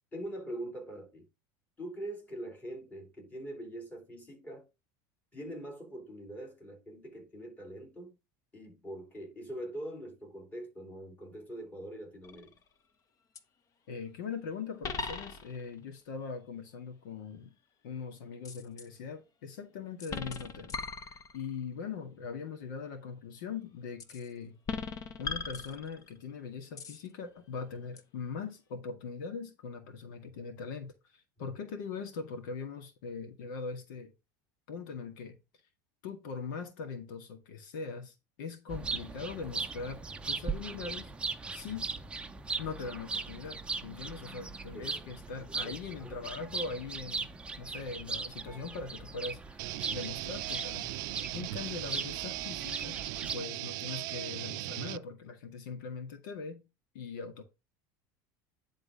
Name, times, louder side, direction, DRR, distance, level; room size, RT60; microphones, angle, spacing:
voice 1, 0.1-1.2 1.8-4.7 5.3-8.2 8.5-12.5 44.7-45.1 45.6-46.1, right 1 dB, 15° left, 3.1 m, -43 dB
sound 1, 12.2-12.7 13.4-13.5 14.8-15.7 18.4-18.9 20.0-21.6 24.0-24.3 24.7-26.2 26.8-27.1 28.0-28.1, left 4 dB, 35° left, 1.1 m, -39 dB
voice 2, 13.9-17.5 17.8-20.8 21.3-24.6 25.2-34.1 34.7-35.4 36.0-41.1 41.5-41.9 42.6-47.3 47.6-49.6 49.9-51.0 51.3-53.0 53.3-56.6 56.9-57.4, left 5 dB, 85° left, 1.8 m, -41 dB
sound 2, 38.7-53.4, right 4 dB, 10° right, 0.6 m, -39 dB
sound 3, 49.6-55.0, right 19 dB, 75° right, 0.4 m, -38 dB
10.5 x 3.9 x 4.9 m
supercardioid pair, 140°, 10 cm